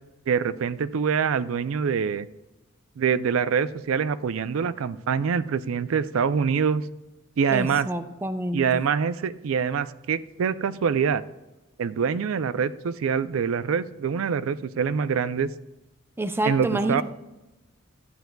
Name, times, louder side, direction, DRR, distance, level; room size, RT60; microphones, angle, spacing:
voice 1, 0.3-2.3 3.0-6.8 7.4-7.9 8.5-11.2 11.8-15.5 16.4-17.0, right 6 dB, 75° right, 14 dB, 0.4 m, -25 dB
voice 2, 7.5-8.8 16.2-17.0, right 1 dB, 10° right, 8 dB, 0.5 m, -28 dB
12.5 x 9.1 x 2.2 m, 1.0 s
head